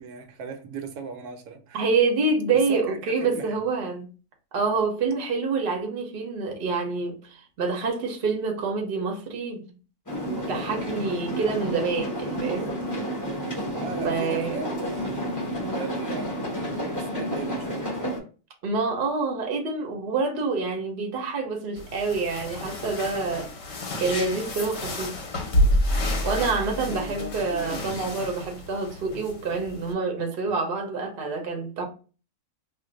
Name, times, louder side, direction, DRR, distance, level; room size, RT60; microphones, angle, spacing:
voice 1, 0.0-1.9 2.7-3.5 13.8-16.3 16.7-17.9 26.7-28.2 29.5-29.6, right 4 dB, 85° right, 1.1 m, -38 dB
voice 2, 1.7-4.1 4.5-9.6 10.5-12.7 14.0-14.6 18.6-23.5 24.0-25.2 26.2-31.8, right 4 dB, 50° right, 0.7 m, -27 dB
sound 1, 10.1-18.2, equal, 20° left, 0.5 m, -30 dB
sound 2, 21.8-29.9, left 1 dB, 55° left, 0.8 m, -29 dB
2.5 x 2.2 x 3.8 m
omnidirectional pair, 1.6 m